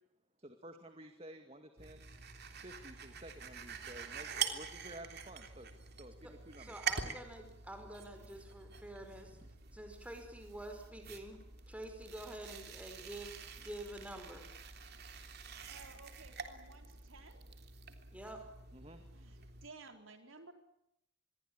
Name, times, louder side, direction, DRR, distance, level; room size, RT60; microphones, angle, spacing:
voice 1, 0.4-2.0 2.6-6.8 9.4-9.5 18.7-19.1, right 1 dB, 30° right, 6 dB, 2.2 m, -52 dB
sound 1, 1.8-19.7, right 6 dB, 50° right, 3.4 m, -46 dB
voice 2, 6.6-9.4 9.7-11.4 11.7-14.6 18.1-18.4, right 1 dB, 5° right, 5 dB, 5.1 m, -48 dB
voice 3, 15.7-17.4 19.1-20.5, right 3 dB, 70° right, 6 dB, 4.3 m, -56 dB
27.5 x 22.5 x 8.8 m, 0.80 s
head